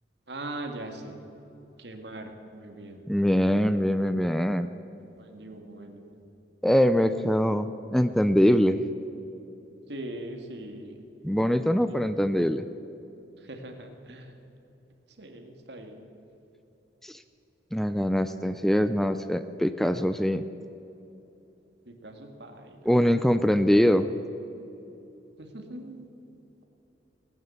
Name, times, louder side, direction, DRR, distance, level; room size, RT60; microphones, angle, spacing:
voice 1, 0.3-1.2 1.8-3.0 3.4-3.7 5.2-6.2 9.9-11.0 13.4-14.3 15.2-16.0 21.9-22.9 25.4-26.1, right 1 dB, 70° right, 4 dB, 1.9 m, -41 dB
voice 2, 3.1-4.7 6.6-8.8 11.2-12.7 17.0-17.2 17.7-20.4 22.9-24.1, equal, ahead, 11 dB, 0.4 m, -23 dB
18.5 x 9.1 x 8.1 m, 3.0 s
head